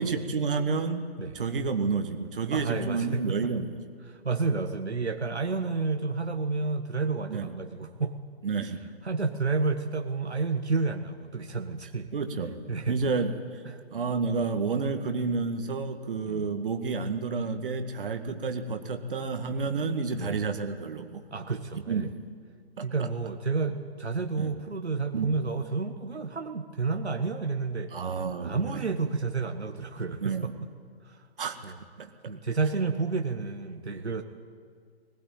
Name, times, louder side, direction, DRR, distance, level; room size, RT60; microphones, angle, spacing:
voice 1, 0.0-1.0 1.3-3.8 7.3-7.5 8.4-8.9 12.1-12.6 12.9-13.6 13.9-21.2 21.9-22.1 22.8-23.1 24.4-24.5 25.1-25.3 27.9-28.9 30.2-30.5 31.4-31.6 32.0-32.1, right 4 dB, 55° right, 6 dB, 2.0 m, -30 dB
voice 2, 2.5-3.5 4.1-8.2 9.0-12.1 12.7-13.0 13.7-13.8 16.3-16.5 20.1-20.4 21.3-22.1 22.8-27.9 28.4-30.7 31.0-31.2 31.6-31.8 32.3-34.2, right 4 dB, 80° right, 5 dB, 1.7 m, -30 dB
20.5 x 19.5 x 9.2 m, 2.1 s
figure-of-eight pair, 140°, 33 cm